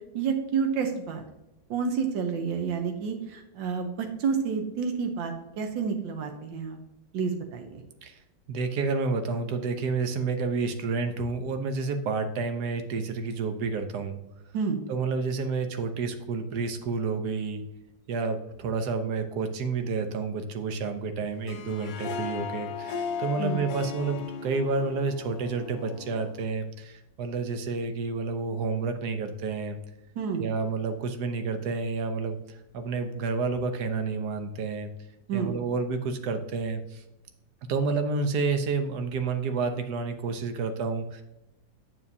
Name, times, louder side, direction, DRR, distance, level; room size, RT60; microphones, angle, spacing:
voice 1, 0.1-1.2 1.7-6.8 7.1-7.8 14.5-14.8 23.4-23.6 30.2-30.4 35.3-35.6, right 6 dB, 85° right, 4 dB, 1.5 m, -29 dB
voice 2, 8.5-14.2 14.9-17.6 18.1-29.8 30.3-32.4 32.7-34.9 35.3-37.0 37.7-41.2, right 4 dB, 65° right, 7 dB, 1.2 m, -30 dB
Harp, 21.3-26.5, left 5 dB, 80° left, 1.4 m, -37 dB
8.4 x 7.0 x 2.7 m, 0.90 s
omnidirectional pair, 2.0 m